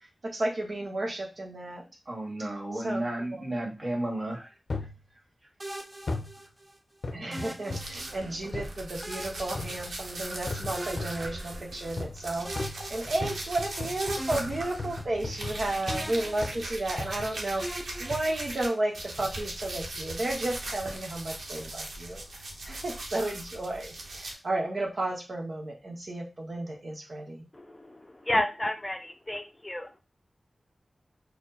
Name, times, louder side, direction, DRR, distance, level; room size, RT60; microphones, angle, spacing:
voice 1, 0.3-1.8 2.8-3.0 7.1-17.6 18.0-27.4, right 2 dB, 60° right, 1.0 m, -33 dB
voice 2, 2.1-4.5, right 1 dB, 45° right, 1.9 m, -33 dB
sound 1, 4.7-5.0 6.1-6.4 7.0-8.0 8.5-8.8 9.6-9.9 10.5-11.3 12.0-12.3 12.6-16.1 16.4-16.7 17.0-17.4 18.1-18.3 19.2-19.5 20.1-20.2, left 3 dB, 70° left, 0.5 m, -37 dB
sound 2, 5.6-6.8 7.3-8.4 9.0-10.4 10.7-11.9 12.4-13.8 14.2-15.6 15.9-17.1 17.6-19.0, right 1 dB, 20° right, 0.7 m, -42 dB
sound 3, 7.7-18.7 18.9-24.3, right 2 dB, 90° right, 0.9 m, -39 dB
voice 3, 27.5-30.0, left 1 dB, 25° left, 0.5 m, -31 dB
4.3 x 2.2 x 4.1 m
wide cardioid pair, 65°, 0 cm